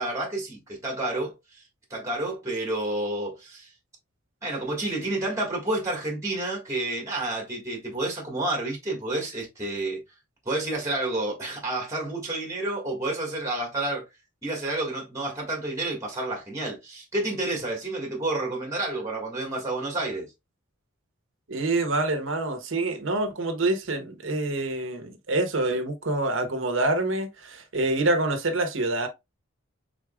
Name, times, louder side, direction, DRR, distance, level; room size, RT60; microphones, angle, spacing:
voice 1, 0.0-1.6 1.9-3.7 4.4-10.0 10.4-14.0 14.4-20.3, right 2 dB, 15° right, 1.6 m, -30 dB
voice 2, 21.5-29.1, right 2 dB, 65° right, 1.0 m, -26 dB
4.9 x 3.9 x 2.3 m
head